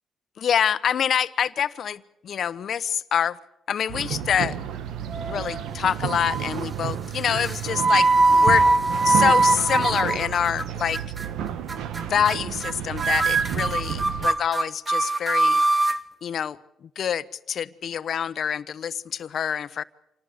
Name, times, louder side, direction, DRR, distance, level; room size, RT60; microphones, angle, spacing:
voice 1, 0.4-3.4 3.7-4.6 5.3-8.1 8.4-8.7 9.0-11.0 12.1-15.6 16.2-19.8, left 8 dB, 60° left, 15 dB, 1.0 m, -26 dB
sound 1, 3.9-14.3, right 9 dB, 85° right, 1.6 m, -31 dB
sound 2, 5.1-5.7 6.1-6.6 7.3-10.6 10.9-11.3 11.7-12.0 12.3-12.7 13.0-16.0, right 2 dB, 25° right, 1.2 m, -22 dB
27.0 x 19.0 x 8.2 m, 0.84 s
cardioid pair, 90°, 0 cm